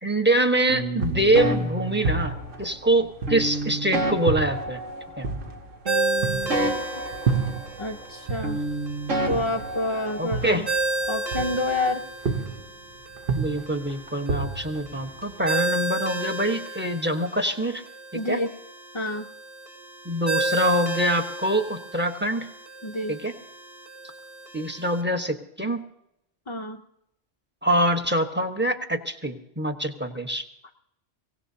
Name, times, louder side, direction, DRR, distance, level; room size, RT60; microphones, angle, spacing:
voice 1, 0.0-4.8 5.2-5.3 10.2-10.6 13.3-17.8 18.1-18.4 20.0-22.5 23.1-23.3 24.5-25.8 27.6-30.4, right 1 dB, 10° right, 5 dB, 1.2 m, -25 dB
sound 1, 0.7-2.7 3.3-5.6 5.9-8.2 8.4-10.5, right 1 dB, 90° right, 2.4 m, -30 dB
sound 2, 1.0-3.8 4.3-8.0 8.3-11.9 12.3-12.8 13.2-15.5, right 4 dB, 50° right, 1.1 m, -30 dB
Ringtone, 5.9-25.0, right 2 dB, 30° right, 3.5 m, -33 dB
voice 2, 6.6-7.0 7.8-8.7 9.3-10.7 11.1-12.0 18.1-18.5 18.9-19.3 22.8-23.2 26.5-26.8, left 2 dB, 30° left, 2 dB, 0.6 m, -29 dB
23.5 x 18.0 x 2.8 m, 0.81 s
omnidirectional pair, 1.3 m